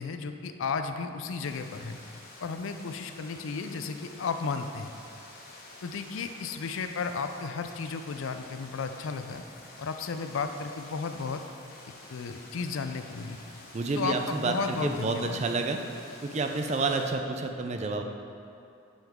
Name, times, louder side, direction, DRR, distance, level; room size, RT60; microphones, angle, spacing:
voice 1, 0.0-2.0 2.4-4.9 5.8-9.4 9.8-11.4 12.1-13.4 14.0-15.4, left 5 dB, 70° left, 8 dB, 0.4 m, -34 dB
sound 1, 1.4-17.1, left 2 dB, 45° left, 1.1 m, -49 dB
voice 2, 13.7-15.8 16.2-18.0, right 3 dB, 30° right, 5 dB, 0.4 m, -29 dB
8.9 x 5.6 x 3.6 m, 2.7 s
head